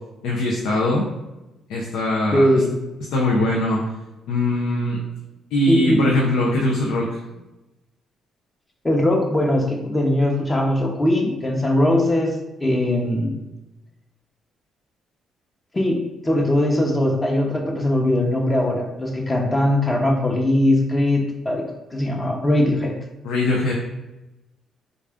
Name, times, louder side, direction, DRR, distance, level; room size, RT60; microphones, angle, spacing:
voice 1, 0.2-1.1 1.7-2.5 3.1-3.8 4.3-5.0 5.5-7.2 23.2-23.7, left 1 dB, 90° left, -3 dB, 0.5 m, -21 dB
voice 2, 2.3-2.7 5.7-6.1 8.8-12.3 12.6-13.4 15.7-21.6 21.9-22.9, left 1 dB, 20° left, 1 dB, 0.7 m, -20 dB
3.7 x 2.3 x 3.4 m, 1.0 s
cardioid pair, 90°, 0 cm